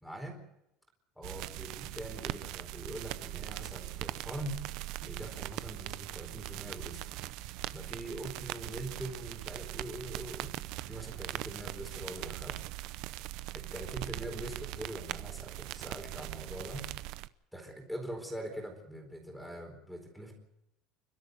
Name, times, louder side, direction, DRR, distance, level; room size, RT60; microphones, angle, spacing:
voice 1, 0.0-0.4 1.2-4.6 5.0-7.2 7.7-12.6 13.5-16.9 17.5-20.3, right 1 dB, ahead, 2 dB, 4.3 m, -43 dB
sound 1, 1.2-17.3, right 17 dB, 60° right, 0.7 m, -41 dB
30.0 x 12.5 x 7.9 m, 0.84 s
cardioid pair, 160°, 0 cm